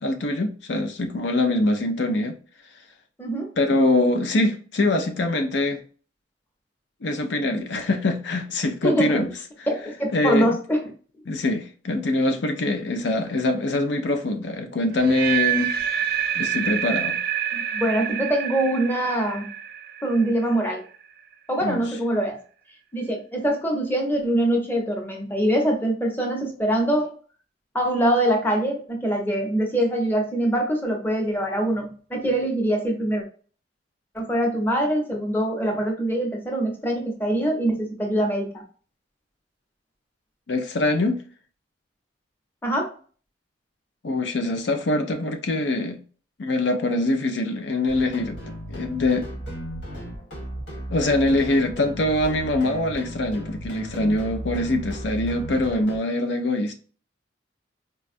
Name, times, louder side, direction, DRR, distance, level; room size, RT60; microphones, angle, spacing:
voice 1, 0.0-2.4 3.6-5.8 7.0-9.3 9.6-9.7 10.1-10.6 11.3-15.7 16.4-17.2 21.6-21.8 40.5-41.2 44.0-46.0 46.4-48.4 48.7-49.3 50.9-56.7, left 2 dB, 70° left, 0.5 m, -23 dB
voice 2, 3.2-3.5 8.8-9.2 9.7-10.8 17.5-19.5 20.0-20.8 21.5-22.4 22.9-27.1 27.7-33.2 34.1-38.6 42.6-42.9, right 1 dB, 10° left, 0.8 m, -24 dB
sound 1, 14.9-21.0, right 9 dB, 60° right, 0.5 m, -27 dB
sound 2, 47.9-56.0, right 1 dB, 85° left, 1.6 m, -35 dB
4.2 x 2.3 x 2.5 m
head